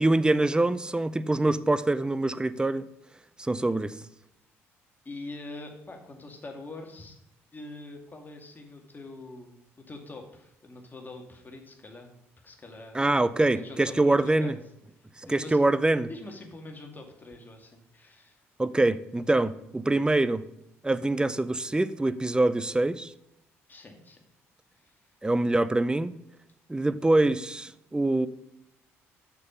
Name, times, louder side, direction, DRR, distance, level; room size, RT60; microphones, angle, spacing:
voice 1, 0.0-2.9 3.4-3.9 12.9-14.5 15.3-16.1 18.6-20.4 20.8-23.1 25.2-26.1 26.7-28.3, right 2 dB, 10° right, 0.5 m, -24 dB
voice 2, 5.0-7.2 7.5-9.5 9.9-12.1 12.4-13.0 13.5-14.5 15.2-15.6 16.1-18.4 23.7-24.2 24.8-24.9, left 2 dB, 25° left, 2.2 m, -44 dB
6.9 x 6.5 x 5.4 m
hypercardioid pair, 50°, 7 cm